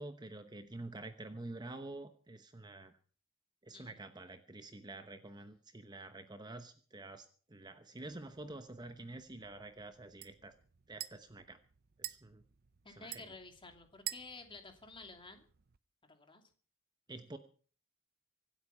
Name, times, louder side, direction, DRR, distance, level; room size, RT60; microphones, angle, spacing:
voice 1, 0.0-3.0 3.6-10.5 10.9-11.6 12.0-12.4 13.0-13.3 17.1-17.4, right 2 dB, 20° right, 8 dB, 0.9 m, -48 dB
voice 2, 3.7-4.0 12.8-15.5 16.1-16.4, left 3 dB, 25° left, 5 dB, 2.6 m, -52 dB
sound 1, 8.0-15.8, right 14 dB, 50° right, 0.6 m, -50 dB
25.0 x 8.4 x 5.6 m, 0.43 s
head